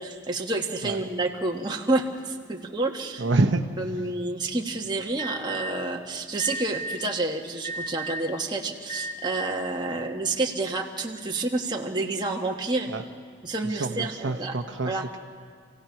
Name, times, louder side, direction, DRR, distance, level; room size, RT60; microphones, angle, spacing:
voice 1, 0.0-3.2 3.8-12.9 13.4-14.5 14.8-15.1, right 2 dB, 20° right, 1 dB, 1.3 m, -29 dB
voice 2, 3.2-3.6 12.9-13.0 13.8-15.2, right 2 dB, 70° right, 5 dB, 0.9 m, -26 dB
Alarm, 5.2-5.7 6.4-7.0 7.6-8.3 8.9-9.5, right 2 dB, 20° left, 1.5 m, -33 dB
27.5 x 16.5 x 5.8 m, 2.2 s
head